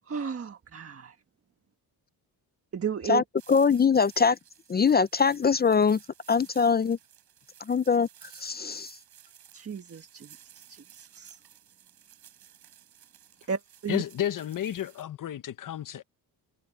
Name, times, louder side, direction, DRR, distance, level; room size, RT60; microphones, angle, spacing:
voice 1, 0.1-1.2 2.7-3.2 9.5-11.4 13.5-14.0, right 7 dB, 35° right, 1.5 m, -34 dB
sound 1, 3.4-15.0, right 10 dB, 75° right, 3.9 m, -55 dB
voice 2, 3.5-4.4 4.7-6.0 6.3-7.0 7.7-8.1 8.4-8.9, left 5 dB, 25° left, 0.4 m, -22 dB
voice 3, 13.9-16.0, left 11 dB, 55° left, 0.9 m, -32 dB
cardioid pair, 125°, 39 cm